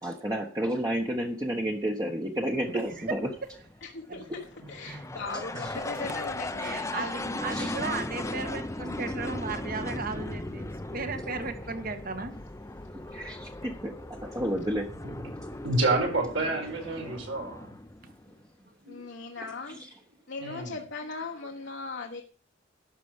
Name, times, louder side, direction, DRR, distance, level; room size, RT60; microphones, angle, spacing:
voice 1, 0.0-3.3 5.6-5.7 7.5-7.8 10.8-10.9 12.9-15.1 19.7-19.8, right 1 dB, 20° right, 0 dB, 1.2 m, -31 dB
sound 1, 2.4-18.4, left 1 dB, 15° left, 0.7 m, -38 dB
voice 2, 2.7-3.2 4.1-4.3 4.6-5.1 6.0-6.1 6.6-12.3 13.0-13.2 18.8-19.1, right 4 dB, 50° right, 8 dB, 1.7 m, -36 dB
voice 3, 3.8-7.4 18.9-19.8 20.3-22.2, left 4 dB, 60° left, 2 dB, 1.2 m, -39 dB
voice 4, 15.6-17.7 20.4-20.7, right 2 dB, 70° right, 0 dB, 4.7 m, -28 dB
12.0 x 4.9 x 8.1 m, 0.40 s
head